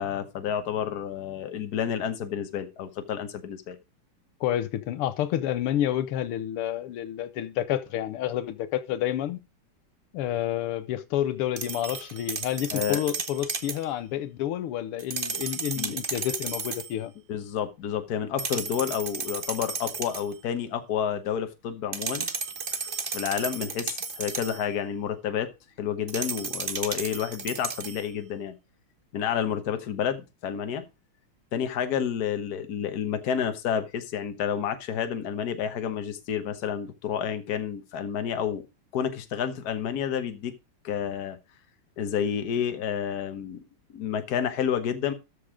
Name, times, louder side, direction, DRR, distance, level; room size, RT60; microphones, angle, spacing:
voice 1, 0.0-3.8 12.7-13.0 15.8-16.0 17.3-22.3 22.7-25.5 25.8-28.5 29.1-30.8 31.5-38.7 38.9-40.6 40.8-41.4 42.0-43.6 43.9-45.1, left 8 dB, 50° left, 1.5 m, -30 dB
voice 2, 4.4-9.4 10.1-17.1, left 12 dB, 85° left, 1.7 m, -29 dB
sound 1, 11.6-13.8 15.0-16.9 18.4-20.3 21.9-24.6 26.1-28.1, right 5 dB, 35° right, 0.8 m, -34 dB
13.0 x 5.2 x 4.9 m
omnidirectional pair, 2.4 m